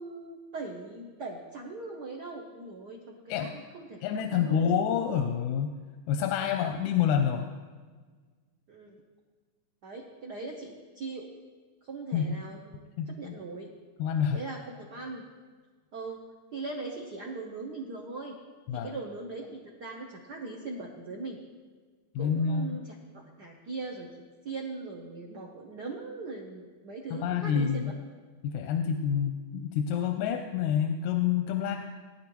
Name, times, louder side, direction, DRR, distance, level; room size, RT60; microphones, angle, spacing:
voice 1, 0.0-4.1 4.3-4.6 8.7-9.0 9.8-11.3 11.8-12.8 13.1-13.7 14.3-15.2 15.9-16.2 16.5-18.4 18.7-21.4 22.2-24.1 24.4-27.9, right 3 dB, 75° right, 0 dB, 0.9 m, -40 dB
voice 2, 4.0-5.8 6.1-7.5 12.1-12.4 13.0-13.4 14.0-14.4 18.7-18.9 22.2-22.7 27.1-27.9 28.4-31.8, left 8 dB, 90° left, 5 dB, 2.1 m, -28 dB
19.0 x 10.0 x 3.1 m, 1.5 s
omnidirectional pair, 3.3 m